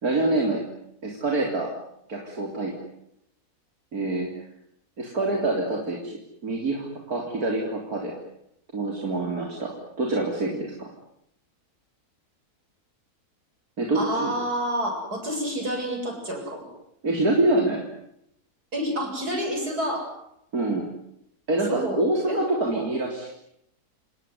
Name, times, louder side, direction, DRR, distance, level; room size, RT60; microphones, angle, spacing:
voice 1, 0.0-0.6 1.0-1.7 2.1-2.7 3.9-4.3 5.0-8.1 8.7-10.9 13.8-14.3 17.0-17.9 20.5-20.9 21.5-23.3, right 2 dB, 70° right, 0 dB, 4.2 m, -26 dB
voice 2, 13.9-16.7 18.7-20.1 21.7-22.9, right 1 dB, 90° right, 2 dB, 8.5 m, -29 dB
29.0 x 19.0 x 9.6 m, 0.79 s
omnidirectional pair, 1.6 m